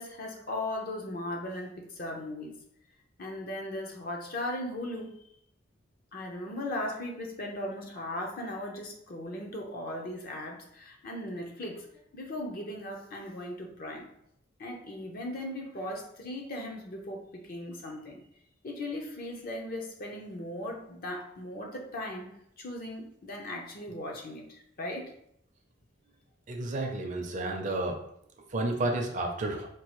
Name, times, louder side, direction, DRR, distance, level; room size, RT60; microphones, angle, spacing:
voice 1, 0.0-2.6 3.2-5.1 6.1-11.9 12.1-14.0 14.6-18.2 18.6-22.3 22.6-25.1, left 1 dB, 50° left, 0 dB, 0.7 m, -38 dB
voice 2, 26.5-28.0 28.5-29.7, right 2 dB, 40° right, 3 dB, 0.6 m, -31 dB
4.6 x 2.3 x 3.0 m, 0.71 s
head